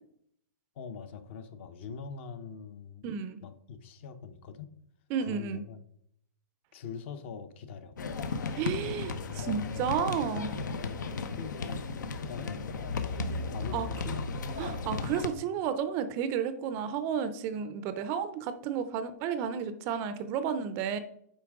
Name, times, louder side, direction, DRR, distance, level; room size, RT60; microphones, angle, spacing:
voice 1, 0.8-3.1 3.4-4.8 5.2-5.8 6.7-8.0 10.8-11.8 12.1-14.2, left 6 dB, 40° left, 11 dB, 0.7 m, -43 dB
voice 2, 3.0-3.4 5.1-5.6 8.6-10.6 13.7-13.9 14.6-21.0, right 7 dB, 25° right, 11 dB, 0.4 m, -32 dB
sound 1, 8.0-15.3, left 4 dB, 80° left, 0.9 m, -35 dB
8.4 x 5.4 x 3.5 m, 0.71 s
hypercardioid pair, 160°, 10 cm